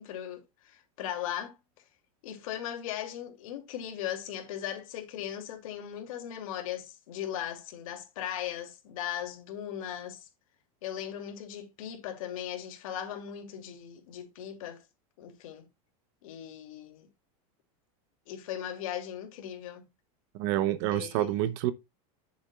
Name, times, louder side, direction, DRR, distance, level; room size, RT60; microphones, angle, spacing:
voice 1, 0.0-1.6 2.2-10.3 10.8-14.8 15.2-15.7 16.2-17.1 18.3-19.9 20.9-21.4, left 10 dB, 70° left, 2.7 m, -38 dB
voice 2, 20.3-21.7, right 13 dB, 50° right, 0.9 m, -28 dB
10.5 x 7.1 x 2.4 m
supercardioid pair, 160°, 18 cm